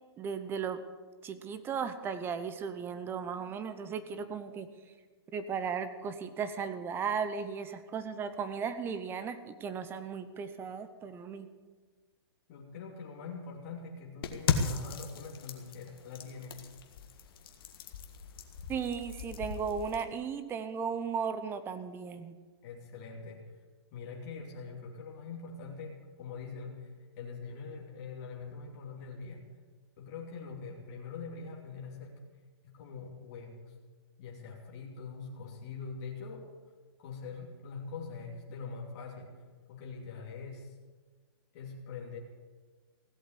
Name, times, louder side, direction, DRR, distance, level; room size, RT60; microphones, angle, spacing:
voice 1, 0.2-0.8 1.2-4.7 5.3-11.5 18.7-22.4, right 6 dB, 15° right, 11 dB, 0.9 m, -36 dB
voice 2, 12.5-16.6 22.6-23.6 23.9-29.5 30.0-32.2 32.6-33.8 34.2-36.5 37.0-40.8 41.5-42.2, left 4 dB, 40° left, -2 dB, 2.9 m, -43 dB
sound 1, 14.2-20.0, left 6 dB, 60° left, 1.7 m, -37 dB
16.5 x 7.9 x 9.4 m, 1.4 s
hypercardioid pair, 150°, 14 cm